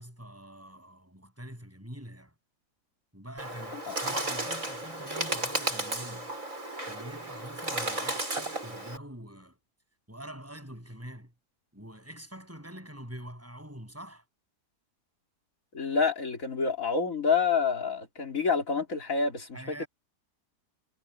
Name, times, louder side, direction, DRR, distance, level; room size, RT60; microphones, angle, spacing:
voice 1, 0.0-2.3 3.1-6.4 6.9-9.6 10.1-11.3 11.7-14.2 19.5-19.9, right 1 dB, 10° right, 8.0 m, -45 dB
Bird, 3.4-9.0, right 1 dB, 50° right, 7.9 m, -34 dB
voice 2, 15.7-19.8, left 5 dB, 55° left, 3.4 m, -28 dB
omnidirectional pair, 1.7 m